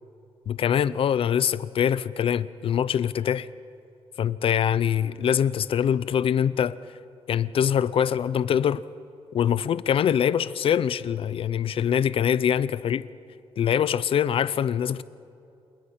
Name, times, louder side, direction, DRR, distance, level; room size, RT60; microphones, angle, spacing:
voice 1, 0.5-3.5 4.2-6.8 7.3-8.8 9.3-13.1 13.6-15.0, left 9 dB, 60° left, 0.5 m, -24 dB
28.0 x 19.5 x 5.8 m
wide cardioid pair, 165°, 11 cm